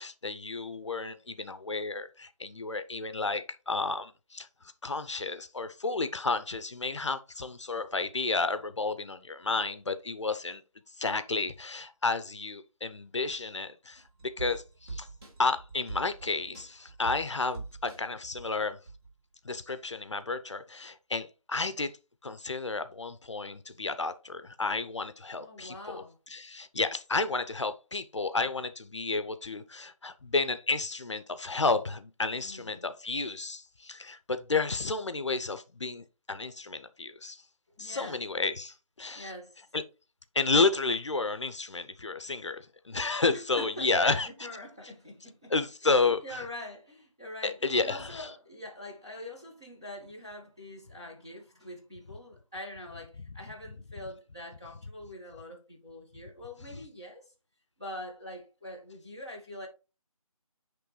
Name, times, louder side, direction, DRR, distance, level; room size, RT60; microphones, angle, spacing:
voice 1, 0.0-4.5 4.8-10.6 11.0-14.0 14.4-15.1 15.4-18.8 19.4-22.0 22.2-26.0 26.3-37.4 37.8-39.3 39.7-39.8 40.3-44.3 45.5-46.4 47.4-48.3, left 3 dB, 50° left, 0.7 m, -31 dB
sound 1, 14.0-19.2 19.5-19.6, right 3 dB, 45° right, 3.5 m, -44 dB
voice 2, 25.3-26.2 32.3-32.8 37.8-38.2 39.1-39.7 43.3-45.5 45.8-57.3 57.8-59.7, left 1 dB, 10° right, 0.6 m, -44 dB
9.9 x 3.3 x 3.1 m
figure-of-eight pair, 165°, 19 cm